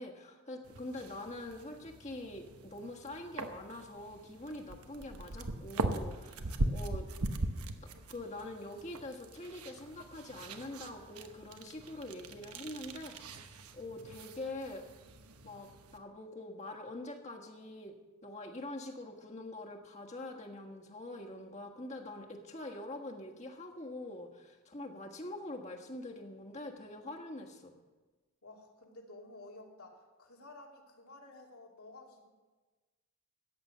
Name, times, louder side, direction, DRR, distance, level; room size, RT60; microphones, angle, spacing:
voice 1, 0.0-7.1 7.8-13.4 13.7-14.8 15.4-18.0 18.2-27.7, left 1 dB, 30° left, 2 dB, 1.5 m, -44 dB
sound 1, 0.6-16.0, right 2 dB, 90° right, 1.1 m, -41 dB
voice 2, 28.4-32.3, left 2 dB, 85° left, -1 dB, 2.9 m, -53 dB
14.5 x 9.5 x 6.7 m, 1.2 s
head